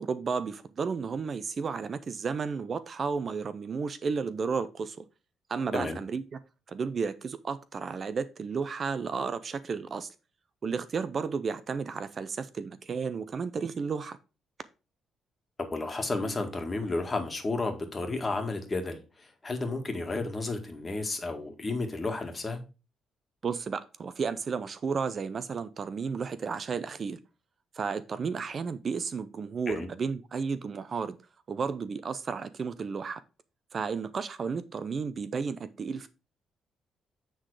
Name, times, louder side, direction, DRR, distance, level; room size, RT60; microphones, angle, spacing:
voice 1, 0.0-5.0 5.5-6.2 6.7-10.1 10.6-14.2 23.4-27.2 27.7-31.2 31.5-33.2 33.7-36.1, right 5 dB, 45° right, 0.5 m, -33 dB
voice 2, 15.6-22.6 29.7-29.9, left 3 dB, 25° left, 1.8 m, -32 dB
8.6 x 3.9 x 4.8 m
cardioid pair, 90°, 0 cm